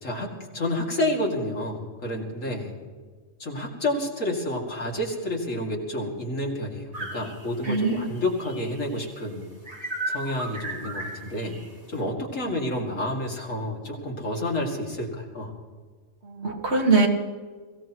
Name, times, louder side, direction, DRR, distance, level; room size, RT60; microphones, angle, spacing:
voice 1, 0.0-2.7 3.4-9.5 10.1-11.6 11.9-15.5, left 1 dB, 80° left, -1 dB, 3.0 m, -29 dB
sound 1, 6.9-9.1 9.6-11.7, right 1 dB, 40° right, 3.5 m, -35 dB
voice 2, 7.6-8.1 16.2-17.1, right 3 dB, 55° right, 1 dB, 2.3 m, -22 dB
22.5 x 17.0 x 3.1 m, 1.5 s
omnidirectional pair, 1.3 m